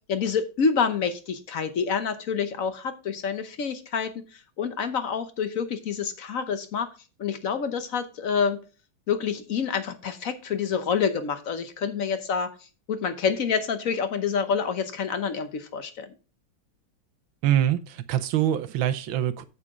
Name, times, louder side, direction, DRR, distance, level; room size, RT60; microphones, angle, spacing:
voice 1, 0.1-4.1 4.6-6.9 7.2-8.6 9.1-12.5 12.9-16.1, left 6 dB, 55° left, 1.0 m, -27 dB
voice 2, 17.4-19.4, right 11 dB, 75° right, 1.5 m, -24 dB
8.4 x 8.2 x 3.6 m
omnidirectional pair, 2.3 m